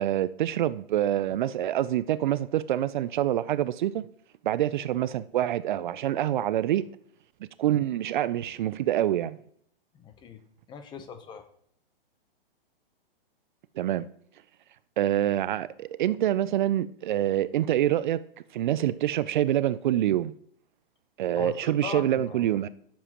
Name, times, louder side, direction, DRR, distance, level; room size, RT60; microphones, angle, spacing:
voice 1, 0.0-4.1 4.4-6.9 7.6-9.4 13.8-14.1 15.0-18.2 18.5-20.3 21.2-22.7, right 12 dB, 55° right, 0.4 m, -26 dB
voice 2, 10.0-10.4 10.7-11.4 21.4-22.6, left 6 dB, 15° left, 0.8 m, -40 dB
14.5 x 7.3 x 3.0 m
hypercardioid pair, 140°, 30 cm